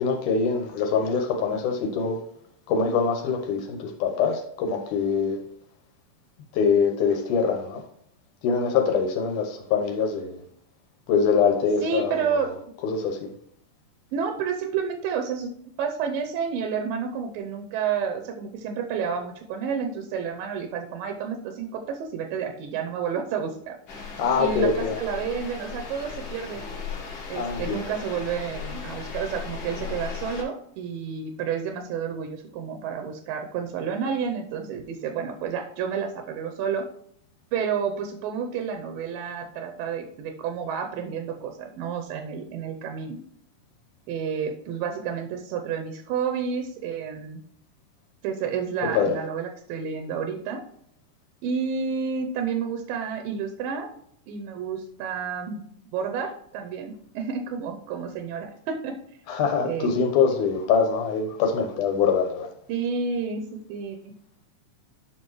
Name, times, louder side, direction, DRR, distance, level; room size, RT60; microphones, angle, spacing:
voice 1, 0.0-2.2 2.7-5.4 6.5-7.8 8.4-10.4 11.1-12.5 12.8-13.3 24.2-25.0 27.3-27.9 48.9-49.2 59.3-62.5, left 5 dB, 75° left, 2.3 m, -24 dB
voice 2, 11.8-12.5 14.1-15.5 15.8-23.7 24.4-26.6 27.3-36.9 37.5-43.2 44.1-47.4 48.2-50.6 51.4-53.9 54.3-55.6 55.9-59.0 59.6-60.0 62.7-64.1, right 6 dB, 85° right, 2.4 m, -30 dB
sound 1, 23.9-30.4, left 5 dB, 50° left, 1.6 m, -36 dB
9.0 x 5.8 x 3.1 m
omnidirectional pair, 4.0 m